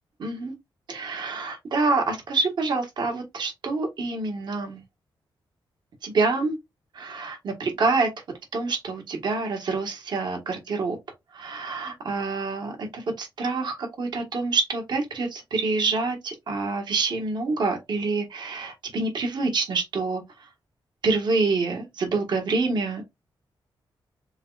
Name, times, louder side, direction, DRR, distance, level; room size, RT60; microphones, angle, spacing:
voice 1, 0.2-0.5 0.9-4.8 6.0-6.6 6.9-8.1 8.5-11.0 11.3-20.2 21.0-23.0, right 3 dB, 60° right, 1.5 m, -26 dB
7.0 x 2.4 x 2.4 m
wide cardioid pair, 135°, 9 cm